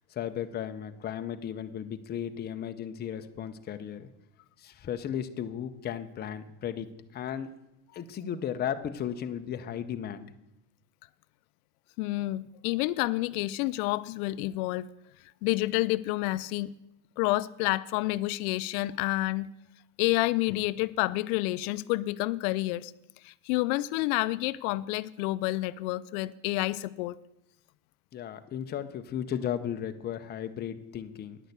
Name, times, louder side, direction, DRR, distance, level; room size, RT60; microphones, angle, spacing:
voice 1, 0.1-4.1 4.6-7.5 7.9-10.3 28.1-31.4, left 9 dB, 25° left, 0.6 m, -35 dB
voice 2, 12.0-14.9 15.4-16.7 17.2-19.5 20.0-22.9 23.2-27.2, left 18 dB, 75° left, 0.5 m, -29 dB
9.9 x 6.4 x 8.0 m
supercardioid pair, 140°, 43 cm